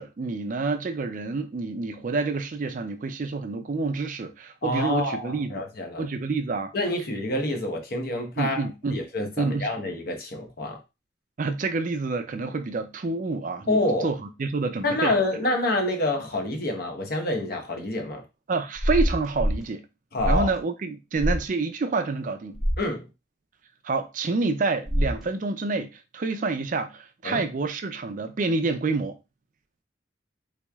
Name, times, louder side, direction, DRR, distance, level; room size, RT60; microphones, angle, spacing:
voice 1, 0.0-5.6 6.0-6.7 8.4-9.0 9.4-9.7 11.4-15.1 18.5-19.8 20.3-22.6 23.8-29.2, right 3 dB, 45° right, 0.4 m, -28 dB
voice 2, 4.6-6.0 6.7-8.6 8.9-10.8 13.7-14.1 14.8-18.3 20.1-20.5 22.8-23.1 27.2-27.4, left 2 dB, 55° left, 0.8 m, -27 dB
sound 1, 18.8-19.6 20.2-20.6 21.2-21.4 22.5-22.8 24.9-25.2, equal, ahead, 0.8 m, -25 dB
3.5 x 3.0 x 2.3 m
head